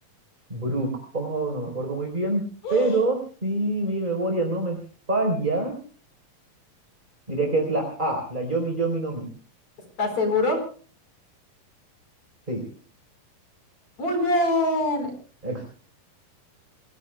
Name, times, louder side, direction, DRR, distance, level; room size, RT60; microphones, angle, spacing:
voice 1, 0.5-2.4 2.7-4.8 5.1-5.7 7.3-9.3 12.5-12.6 15.4-15.6, right 2 dB, 15° right, 3 dB, 4.0 m, -26 dB
voice 2, 2.6-3.0 10.0-10.6 14.0-15.1, left 2 dB, 50° left, 6 dB, 5.8 m, -23 dB
28.5 x 21.5 x 2.3 m, 0.40 s
omnidirectional pair, 4.1 m